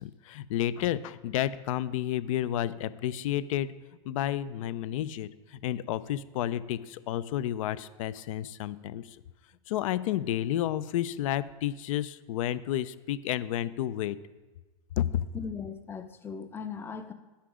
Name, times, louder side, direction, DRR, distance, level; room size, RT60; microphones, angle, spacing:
voice 1, 0.0-3.7 4.1-9.2 9.7-14.2 15.0-15.3, left 12 dB, 70° left, 16 dB, 0.5 m, -31 dB
voice 2, 15.3-17.1, left 6 dB, 10° left, 10 dB, 0.5 m, -38 dB
9.9 x 5.8 x 4.9 m, 1.2 s
hypercardioid pair, 120°, 18 cm